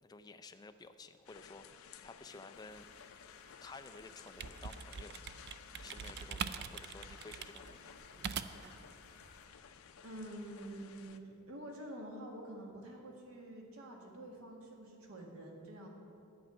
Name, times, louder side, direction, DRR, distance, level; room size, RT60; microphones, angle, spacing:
voice 1, 0.0-2.9 3.6-5.2 5.8-8.0, left 3 dB, 20° left, 8 dB, 0.4 m, -53 dB
sound 1, 1.2-11.2, left 7 dB, 80° left, 0.5 m, -56 dB
sound 2, 2.5-9.5, left 4 dB, 50° left, 1.1 m, -62 dB
sound 3, 4.1-8.8, right 7 dB, 50° right, 0.4 m, -43 dB
voice 2, 10.0-15.9, right 1 dB, 80° right, 0 dB, 1.8 m, -48 dB
11.0 x 5.5 x 8.8 m, 2.6 s
head